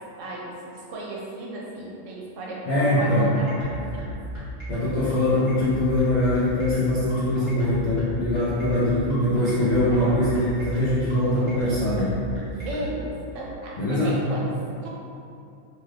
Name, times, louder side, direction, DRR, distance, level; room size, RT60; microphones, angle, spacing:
voice 1, 0.2-4.0 9.9-10.2 12.6-14.4 14.8-14.9, right 1 dB, 75° right, -4 dB, 0.9 m, -35 dB
voice 2, 2.7-3.3 4.7-12.2 13.8-14.2, left 1 dB, 60° left, -10 dB, 0.4 m, -22 dB
sound 1, 3.1-12.9, right 1 dB, 25° left, 1.1 m, -34 dB
2.7 x 2.4 x 3.2 m, 2.6 s
omnidirectional pair, 1.3 m